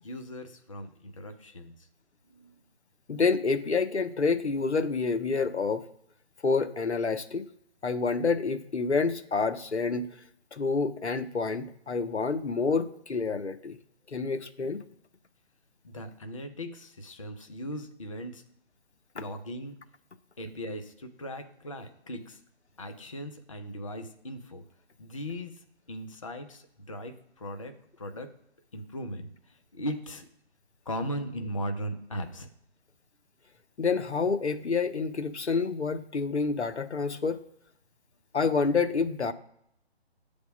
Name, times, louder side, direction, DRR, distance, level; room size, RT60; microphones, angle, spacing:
voice 1, 0.0-1.9 2.3-2.6 15.8-18.4 19.1-19.8 20.4-22.4 22.8-24.6 25.0-28.3 28.7-30.3 30.9-32.5, equal, 30° left, 7 dB, 0.5 m, -38 dB
voice 2, 3.1-5.8 6.4-7.4 7.8-10.1 10.5-13.8 14.1-14.8 19.2-19.3 33.8-37.4 38.3-39.3, left 4 dB, 85° left, 10 dB, 0.7 m, -28 dB
7.9 x 3.5 x 5.1 m, 0.74 s
figure-of-eight pair, 145°, 33 cm